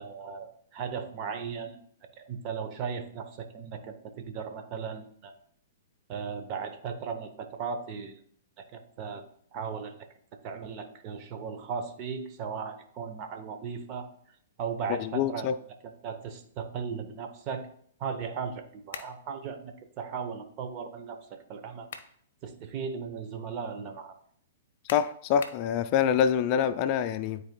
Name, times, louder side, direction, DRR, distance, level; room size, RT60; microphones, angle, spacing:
voice 1, 0.0-1.8 2.2-5.3 6.1-8.2 8.6-9.2 9.5-10.0 10.4-14.1 14.6-15.5 15.8-17.7 18.0-21.9 22.4-24.2, right 6 dB, 40° right, 0.9 m, -37 dB
voice 2, 14.9-15.6 24.9-27.4, left 8 dB, 40° left, 0.3 m, -26 dB
sound 1, 18.9-19.2 21.6-22.2 22.7-22.8 24.9-25.7, left 6 dB, 60° left, 0.7 m, -42 dB
12.0 x 4.0 x 2.3 m
hypercardioid pair, 115°, 0 cm